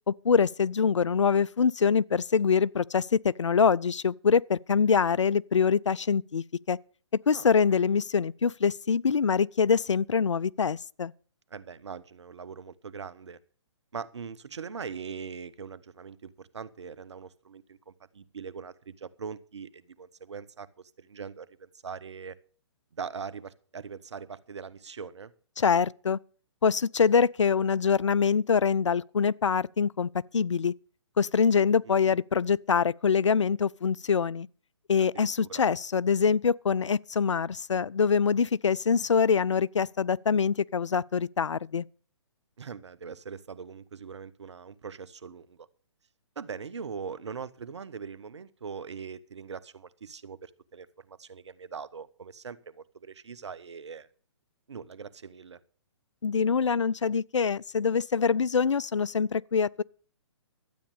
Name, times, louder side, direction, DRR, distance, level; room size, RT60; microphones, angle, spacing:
voice 1, 0.1-6.8 7.3-11.1 25.6-26.2 26.6-30.7 31.2-34.5 34.9-41.9 56.2-59.8, left 6 dB, 85° left, 0.5 m, -24 dB
voice 2, 7.3-7.8 11.5-13.4 13.9-22.3 22.9-25.3 31.8-32.2 35.0-35.6 42.6-45.7 46.4-54.1 54.7-55.6, right 6 dB, 70° right, 1.1 m, -41 dB
12.5 x 8.8 x 6.6 m
figure-of-eight pair, 135°, 15 cm